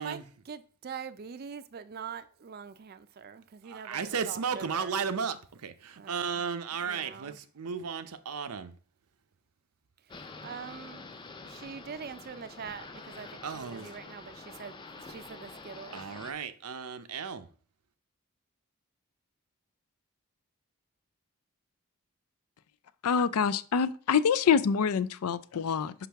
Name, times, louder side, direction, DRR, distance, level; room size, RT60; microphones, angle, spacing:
voice 1, 0.0-5.0 6.0-6.5 6.8-7.4 10.4-11.2 11.4-16.0, right 6 dB, 45° right, 0.4 m, -44 dB
voice 2, 3.6-8.7 13.4-13.9 15.9-17.5, right 6 dB, 90° right, 0.7 m, -34 dB
sound 1, 10.1-16.3, left 3 dB, 20° left, 0.5 m, -47 dB
voice 3, 23.0-25.9, left 6 dB, 90° left, 0.4 m, -26 dB
5.9 x 5.5 x 3.4 m
head